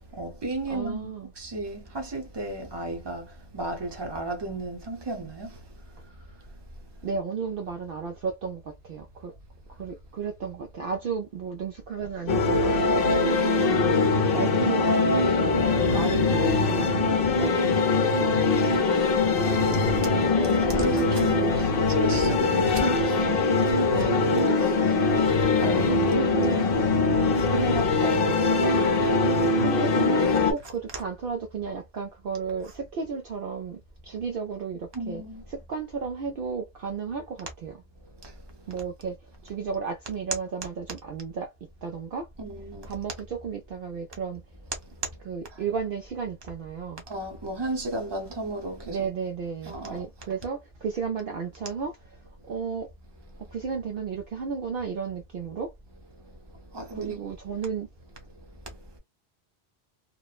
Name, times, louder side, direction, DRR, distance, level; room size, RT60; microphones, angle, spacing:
voice 1, 0.1-5.6 13.4-14.0 18.5-25.2 25.6-26.3 26.8-29.2 29.5-29.7 30.9-31.0 32.6-32.7 34.9-35.4 38.2-38.8 42.4-43.0 45.5-45.6 47.1-49.1 49.6-50.3 53.3-53.4 55.9-56.4 56.7-57.2 58.7-59.0, right 2 dB, 25° right, 0.8 m, -35 dB
voice 2, 0.7-1.3 7.0-9.3 9.8-12.9 13.8-15.1 15.4-16.9 17.4-18.3 23.9-24.6 26.0-26.8 29.6-35.2 35.7-37.7 38.7-39.2 39.4-41.5 41.8-42.3 42.8-44.4 45.3-47.0 48.9-51.9 52.5-52.9 53.5-55.7 56.9-57.9, right 6 dB, 60° right, 0.7 m, -33 dB
sound 1, 12.3-30.5, left 3 dB, 60° left, 0.8 m, -22 dB
3.0 x 2.1 x 2.3 m
omnidirectional pair, 1.1 m